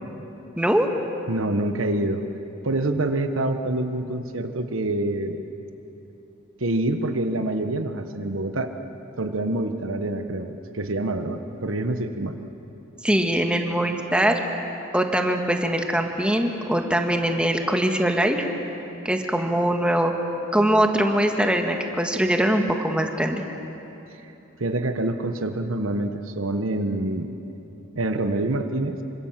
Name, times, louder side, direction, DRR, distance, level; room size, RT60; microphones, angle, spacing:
voice 1, 0.6-0.9 13.0-14.4 14.9-18.5 19.1-20.1 20.5-23.4, right 1 dB, 5° right, 3 dB, 1.7 m, -22 dB
voice 2, 1.3-2.2 2.6-5.4 6.6-8.7 9.2-12.4 24.6-27.3 27.9-29.0, right 2 dB, 85° right, 7 dB, 1.3 m, -26 dB
26.5 x 25.0 x 7.5 m, 2.9 s
head